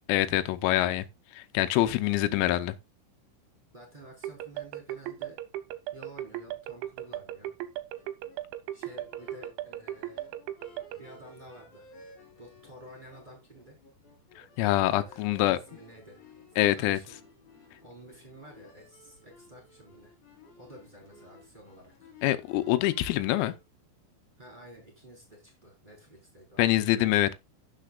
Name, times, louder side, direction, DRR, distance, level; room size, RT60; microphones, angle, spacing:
voice 1, 0.1-1.1 1.3-2.8 14.4-15.6 16.6-17.0 22.2-23.5 26.6-27.3, left 15 dB, 90° left, 3.5 m, -25 dB
voice 2, 3.7-5.4 5.9-7.5 8.7-10.2 11.0-11.9 12.4-13.8 14.9-16.2 16.7-17.2 17.8-20.1 20.6-22.1 24.4-26.7, right 1 dB, 10° right, 3.9 m, -51 dB
sound 1, 4.2-11.0, right 13 dB, 75° right, 3.0 m, -36 dB
sound 2, 7.0-23.6, left 3 dB, 40° left, 4.4 m, -56 dB
17.0 x 6.9 x 2.4 m
omnidirectional pair, 6.0 m